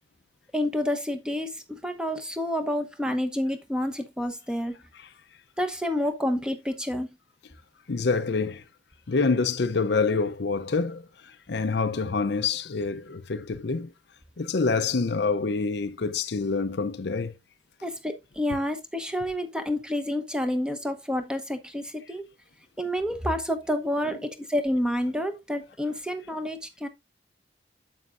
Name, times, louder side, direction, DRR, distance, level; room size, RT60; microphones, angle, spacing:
voice 1, 0.5-4.7 5.6-7.1 17.8-22.3 22.8-26.9, left 1 dB, 5° right, 0.9 m, -29 dB
voice 2, 7.9-8.6 9.1-13.9 14.4-17.3 24.0-24.2, left 4 dB, 55° left, 0.5 m, -27 dB
9.5 x 7.3 x 2.5 m
head